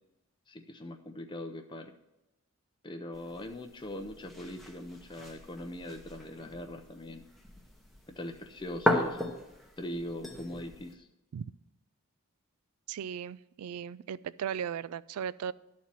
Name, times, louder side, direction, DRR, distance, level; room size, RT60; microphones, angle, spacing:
voice 1, 0.5-1.9 2.8-7.2 8.1-9.2 9.8-11.1, left 1 dB, 20° left, 5 dB, 0.5 m, -41 dB
sound 1, 3.1-10.9, equal, ahead, 0.8 m, -37 dB
voice 2, 12.9-15.5, right 8 dB, 90° right, 19 dB, 0.3 m, -37 dB
11.5 x 4.2 x 7.4 m, 0.96 s
head